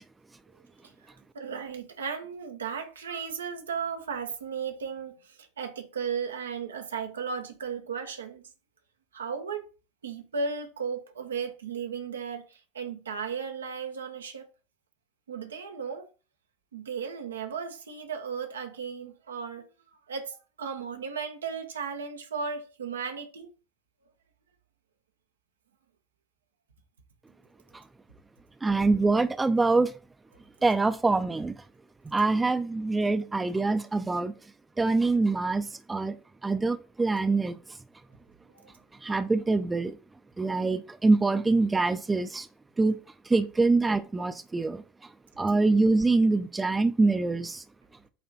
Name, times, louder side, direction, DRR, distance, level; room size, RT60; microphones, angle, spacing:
voice 1, 1.0-8.4 9.1-9.7 10.0-14.5 15.3-16.1 16.7-19.7 20.1-23.5 38.5-38.7, right 6 dB, 75° right, 0.9 m, -35 dB
voice 2, 28.6-29.9 30.6-31.6 32.0-34.3 34.8-36.2 36.4-37.6 39.0-40.0 40.4-42.5 42.8-43.0 43.2-47.6, right 3 dB, 15° right, 0.6 m, -25 dB
8.5 x 3.4 x 4.5 m
figure-of-eight pair, 65°, 0 cm